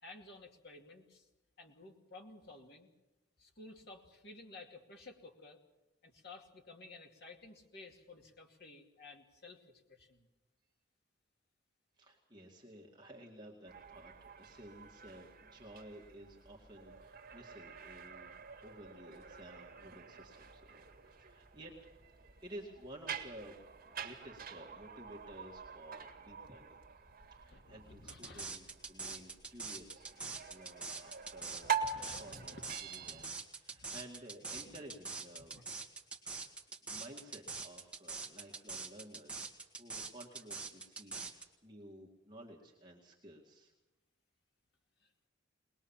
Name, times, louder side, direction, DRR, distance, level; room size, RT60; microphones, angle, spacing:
voice 1, 0.0-1.3 1.6-2.9 3.4-5.6 6.0-9.6 9.9-10.3 27.5-28.5 31.9-33.3 33.7-33.9 34.6-34.8 35.5-35.6 45.0-45.1, left 2 dB, 55° left, 2 dB, 2.5 m, -54 dB
voice 2, 12.0-21.8 22.4-23.6 23.8-26.8 27.3-30.1 30.5-35.5 36.2-36.6 36.8-39.5 39.8-43.7, right 1 dB, 20° right, -1 dB, 2.1 m, -54 dB
sound 1, 13.7-33.3, right 7 dB, 45° right, 2.0 m, -46 dB
sound 2, 28.1-41.4, right 4 dB, 5° right, 1.9 m, -44 dB
22.0 x 20.5 x 7.3 m, 1.0 s
head